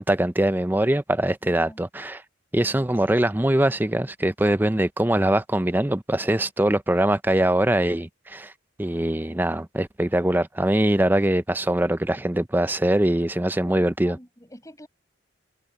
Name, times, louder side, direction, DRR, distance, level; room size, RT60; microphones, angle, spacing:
voice 1, 0.0-2.2 2.5-8.5 8.8-14.2, right 1 dB, 10° right, 0.5 m, -22 dB
voice 2, 1.4-1.8 13.6-14.9, left 1 dB, 15° left, 6.6 m, -45 dB
head